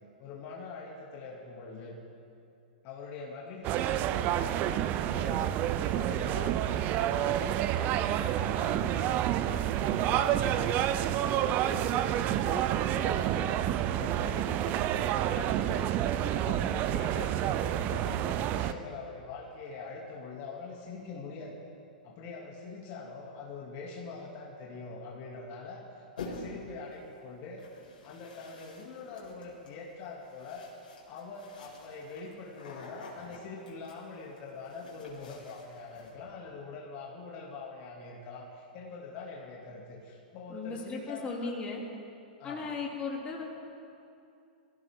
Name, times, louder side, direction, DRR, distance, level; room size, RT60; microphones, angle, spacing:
voice 1, 0.2-1.9 2.8-5.5 5.9-21.6 22.0-27.7 28.0-30.7 31.0-41.5 42.4-42.7, left 4 dB, 45° left, -3 dB, 2.6 m, -43 dB
sound 1, 3.6-18.7, right 12 dB, 35° right, 0.6 m, -29 dB
sound 2, 26.2-26.7 27.6-36.1, left 3 dB, 75° left, 4.7 m, -49 dB
voice 2, 40.5-41.8 42.4-43.4, left 4 dB, 25° left, -2 dB, 3.1 m, -36 dB
22.0 x 16.5 x 3.8 m, 2.6 s
hypercardioid pair, 110°, 5 cm